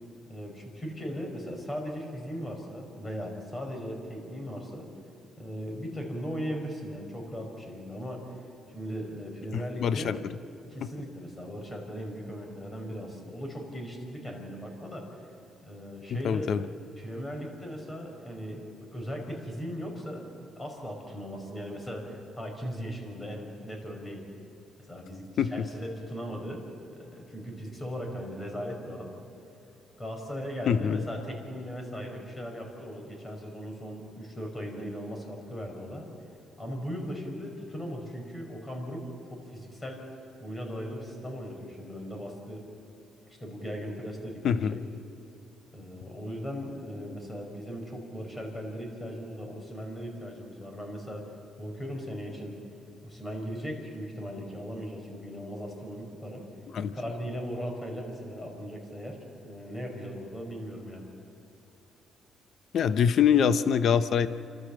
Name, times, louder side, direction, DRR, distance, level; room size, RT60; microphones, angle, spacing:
voice 1, 0.3-4.9 5.4-8.3 8.7-10.2 10.7-15.1 15.6-16.5 17.0-24.2 24.8-29.1 30.0-36.1 36.6-39.0 39.3-40.1 40.4-42.7 43.4-44.8 45.7-51.2 51.6-52.6 53.0-56.5 56.8-59.2 59.4-61.1, equal, 20° left, 1 dB, 5.7 m, -38 dB
voice 2, 9.5-10.2 10.8-10.9 16.1-16.7 25.4-25.7 30.7-31.0 44.4-44.8 56.7-56.9 62.7-64.3, left 7 dB, 65° left, 13 dB, 0.8 m, -24 dB
29.5 x 13.0 x 7.5 m, 3.0 s
cardioid pair, 90°, 0 cm